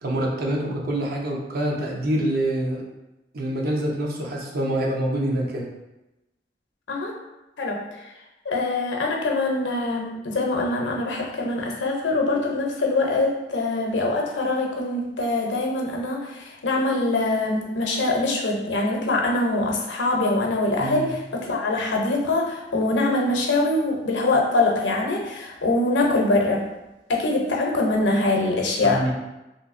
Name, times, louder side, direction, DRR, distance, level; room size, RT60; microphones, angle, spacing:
voice 1, 0.0-2.8 3.3-5.7 20.8-21.1 28.8-29.1, right 1 dB, 55° right, -1 dB, 0.6 m, -26 dB
voice 2, 7.6-8.1 8.4-26.6 27.1-29.1, left 2 dB, 75° left, 0 dB, 0.6 m, -23 dB
3.0 x 2.6 x 2.5 m, 0.99 s
head